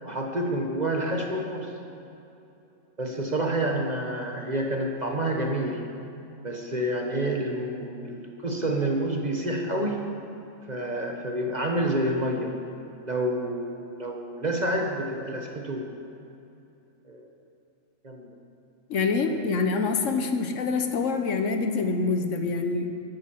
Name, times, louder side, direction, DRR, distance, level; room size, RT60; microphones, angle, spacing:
voice 1, 0.0-1.7 3.0-5.8 6.4-10.1 10.7-12.5 13.0-15.9 17.0-17.3 18.0-18.3 19.4-19.6, right 1 dB, 35° right, 2 dB, 1.0 m, -28 dB
voice 2, 18.9-23.0, left 4 dB, 70° left, 6 dB, 1.2 m, -26 dB
14.5 x 10.5 x 4.5 m, 2.8 s
omnidirectional pair, 1.4 m